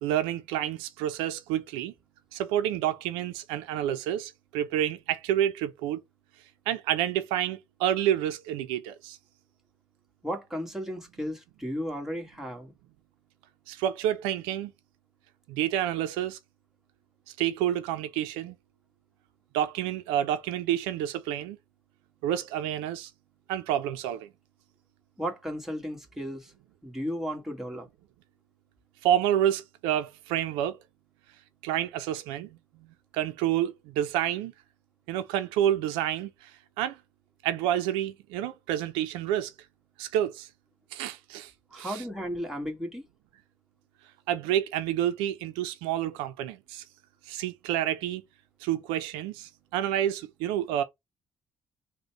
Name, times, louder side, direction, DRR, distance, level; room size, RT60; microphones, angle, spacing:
voice 1, 0.0-1.9 2.3-6.0 6.7-9.2 13.7-14.7 15.5-16.4 17.4-18.6 19.5-21.6 22.2-23.1 23.5-24.3 29.0-30.8 31.6-32.6 33.1-34.5 35.1-36.5 36.8-37.0 37.4-39.5 40.0-40.5 40.9-42.0 44.3-46.8 47.3-48.2 48.6-50.8, right 11 dB, 90° right, 0.5 m, -29 dB
voice 2, 10.2-12.7 25.2-26.5 26.8-27.9 41.7-43.0, equal, 5° right, 1.6 m, -34 dB
3.8 x 2.2 x 4.4 m
supercardioid pair, 65°, 8 cm